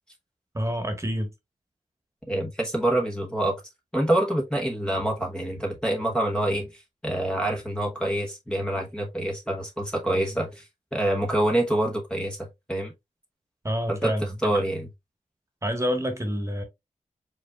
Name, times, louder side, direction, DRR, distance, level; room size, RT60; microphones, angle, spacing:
voice 1, 0.5-1.3 13.6-14.6 15.6-16.6, equal, 20° right, 1.4 m, -28 dB
voice 2, 2.3-3.6 3.9-12.9 13.9-14.1 14.4-14.9, right 1 dB, 5° left, 1.0 m, -26 dB
5.1 x 4.0 x 2.3 m
wide cardioid pair, 90°, 14 cm